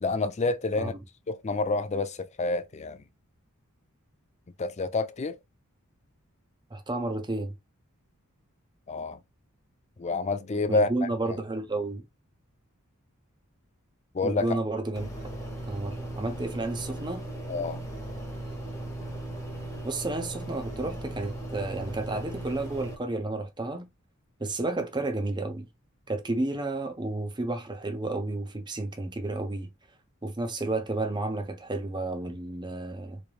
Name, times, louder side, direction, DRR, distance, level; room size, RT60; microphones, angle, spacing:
voice 1, 0.0-0.9 1.3-3.0 4.6-5.4 8.9-9.2 10.0-10.9 14.1-14.5 17.5-17.8, left 3 dB, 30° left, 0.5 m, -28 dB
voice 2, 6.7-7.5 10.7-12.1 14.2-15.1 15.7-17.3 19.8-23.9 24.4-25.7 26.1-29.7 30.2-33.2, right 2 dB, 20° right, 0.8 m, -31 dB
sound 1, 15.0-23.0, right 1 dB, 15° left, 1.1 m, -37 dB
4.0 x 3.3 x 2.4 m
head